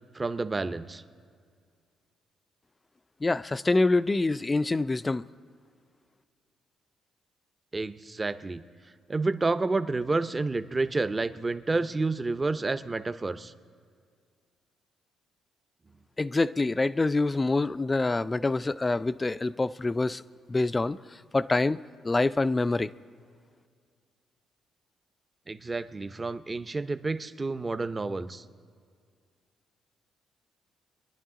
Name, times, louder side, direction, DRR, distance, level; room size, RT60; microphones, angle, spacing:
voice 1, 0.1-1.0 7.7-8.6 9.1-13.5 25.5-28.4, right 3 dB, 25° right, 12 dB, 0.6 m, -29 dB
voice 2, 3.2-5.2 16.2-20.2 20.5-21.0 21.3-22.9, left 2 dB, 20° left, 15 dB, 0.3 m, -26 dB
24.0 x 10.5 x 3.7 m, 2.1 s
cardioid pair, 90°, 0 cm